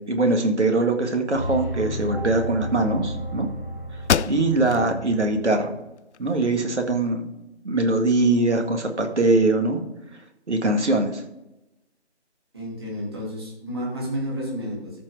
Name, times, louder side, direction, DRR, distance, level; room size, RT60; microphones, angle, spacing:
voice 1, 0.1-3.5 4.3-5.7 6.2-7.3 7.6-9.8 10.5-11.2, right 2 dB, 80° right, 4 dB, 2.1 m, -22 dB
sound 1, 1.3-5.5, equal, 5° right, 1.5 m, -32 dB
sound 2, 3.5-3.6 4.0-4.9 5.3-5.4 6.0-6.9, left 7 dB, 75° left, 0.5 m, -27 dB
voice 2, 4.6-4.9 12.5-15.0, equal, 20° right, -5 dB, 2.5 m, -31 dB
13.5 x 4.5 x 4.8 m, 0.92 s
figure-of-eight pair, 175°, 34 cm